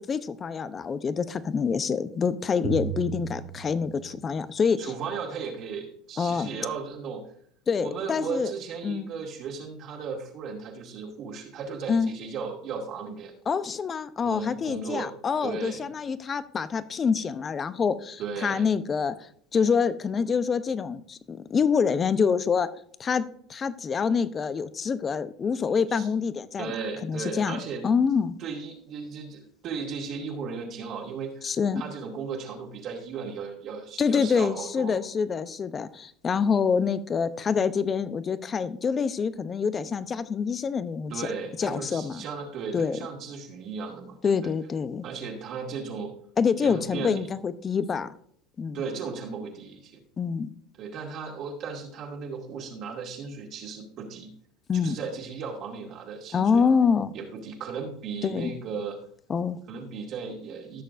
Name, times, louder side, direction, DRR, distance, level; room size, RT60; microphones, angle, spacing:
voice 1, 0.0-4.9 6.2-6.5 7.7-8.5 8.8-9.1 11.9-12.1 13.5-22.7 23.0-23.2 23.5-26.7 27.0-28.3 31.4-31.8 34.0-41.3 41.6-42.2 42.7-43.0 44.2-45.0 46.4-48.1 48.6-48.8 50.2-50.5 54.7-55.0 56.3-57.1 58.2-58.5 59.3-59.6, left 6 dB, 30° left, 14 dB, 0.7 m, -26 dB
Drum, 2.6-5.0, right 11 dB, 70° right, 1.2 m, -36 dB
voice 2, 4.8-7.2 7.8-13.3 14.2-15.1 15.4-15.9 18.2-18.6 25.9-26.1 26.6-27.9 28.4-35.0 41.1-44.5 45.0-46.1 46.6-47.3 48.7-50.0 50.8-54.3 54.8-56.7 57.1-59.0 59.7-60.8, right 5 dB, 50° right, -2 dB, 2.2 m, -36 dB
15.5 x 6.6 x 2.6 m, 0.62 s
hypercardioid pair, 95°, 0 cm